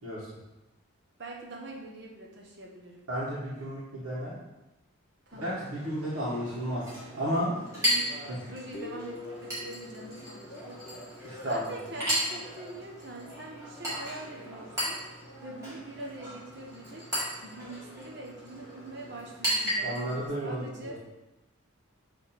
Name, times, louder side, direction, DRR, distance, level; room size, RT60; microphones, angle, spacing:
voice 1, 1.2-3.0 5.3-5.6 7.7-11.0 11.4-17.1 17.4-21.0, right 2 dB, 55° right, -1 dB, 0.9 m, -44 dB
voice 2, 3.1-4.3 5.4-6.9 7.1-7.5 8.3-8.4 11.2-12.0 19.8-21.0, equal, 90° right, -10 dB, 1.8 m, -33 dB
Chink clink, 5.3-20.3, equal, 15° right, 2.1 m, -36 dB
Guitar, 8.7-12.3, left 3 dB, 30° left, 0.3 m, -46 dB
6.9 x 3.4 x 4.5 m, 1.0 s
head